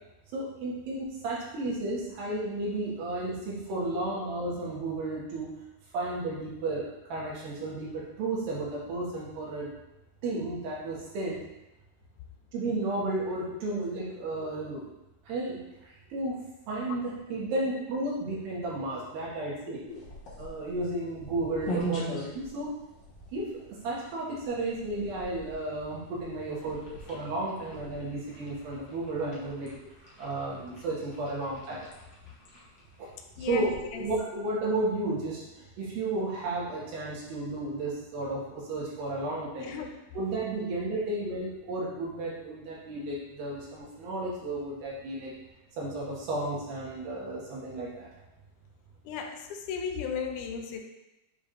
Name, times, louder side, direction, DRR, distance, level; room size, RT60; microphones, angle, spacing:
voice 1, 0.3-5.5 5.9-9.7 10.2-11.4 12.5-14.8 15.2-16.4 16.7-19.8 20.4-22.7 23.3-26.8 27.1-29.7 30.0-31.9 33.0-33.1 33.5-39.8 40.1-45.3 45.7-48.1, right 2 dB, 85° right, -5 dB, 3.2 m, -33 dB
voice 2, 19.4-20.0 20.6-20.7 26.9-27.0 33.4-34.1 39.6-40.0 49.1-50.8, left 6 dB, 80° left, 3 dB, 1.8 m, -36 dB
sound 1, 19.9-34.4, right 1 dB, 60° left, 1.2 m, -43 dB
7.3 x 5.1 x 2.5 m, 0.94 s
omnidirectional pair, 4.1 m